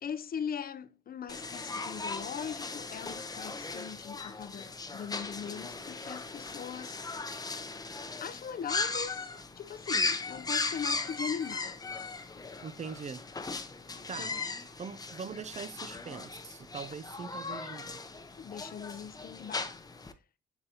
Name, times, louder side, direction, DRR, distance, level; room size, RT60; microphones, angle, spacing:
voice 1, 0.0-7.0 8.2-9.3 9.6-11.8 14.2-14.4 18.4-19.7, left 7 dB, 50° left, 0.6 m, -40 dB
sound 1, 1.3-20.1, left 3 dB, 20° left, 0.8 m, -38 dB
voice 2, 12.6-13.2 14.1-14.3 14.8-18.0, right 6 dB, 35° right, 0.6 m, -42 dB
10.0 x 4.0 x 2.8 m
cardioid pair, 90°, 20 cm